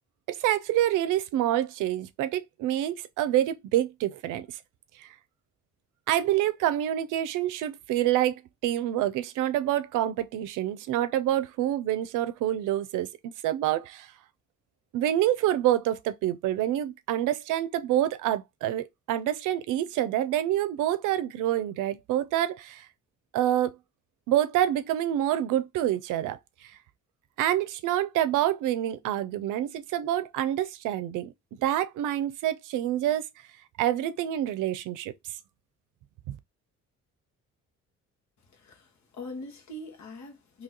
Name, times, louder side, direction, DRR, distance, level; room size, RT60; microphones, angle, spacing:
voice 1, 0.3-4.5 5.0-5.1 6.1-13.1 13.4-14.1 14.9-22.9 23.3-23.8 24.3-26.4 27.4-31.3 31.6-33.3 33.8-35.1 36.3-36.4, right 12 dB, 90° right, 0.5 m, -27 dB
voice 2, 38.5-40.6, left 1 dB, 65° left, 1.4 m, -42 dB
2.9 x 2.8 x 3.8 m
cardioid pair, 90°, 30 cm